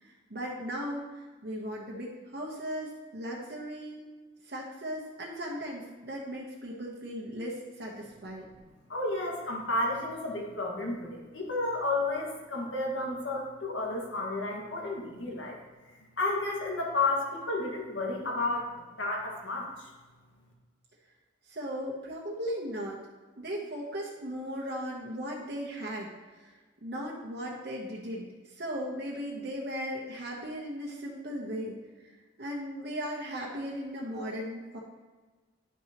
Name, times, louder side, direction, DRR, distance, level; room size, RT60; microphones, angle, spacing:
voice 1, 0.0-4.0 4.4-8.4 21.5-23.0 23.4-26.5 26.8-31.7 32.0-32.1 32.4-34.8, equal, 55° right, -3 dB, 1.0 m, -37 dB
voice 2, 8.9-15.6 16.2-19.9, left 2 dB, 80° left, -2 dB, 1.8 m, -32 dB
10.5 x 5.8 x 3.0 m, 1.3 s
head